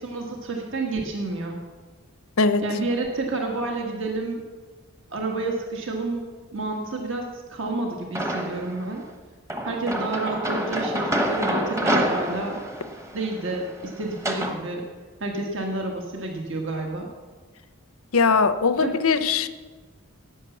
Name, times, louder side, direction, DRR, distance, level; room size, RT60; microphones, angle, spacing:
voice 1, 0.0-1.6 2.6-4.4 5.1-6.2 6.5-9.0 9.6-12.6 13.1-14.8 15.2-17.1 18.8-18.9, right 2 dB, 60° right, 1 dB, 1.6 m, -29 dB
sound 1, 8.2-8.8 9.5-14.6, right 1 dB, 15° right, 1.0 m, -27 dB
voice 2, 18.1-19.5, left 4 dB, 80° left, 12 dB, 0.7 m, -20 dB
12.0 x 9.1 x 7.2 m, 1.4 s
head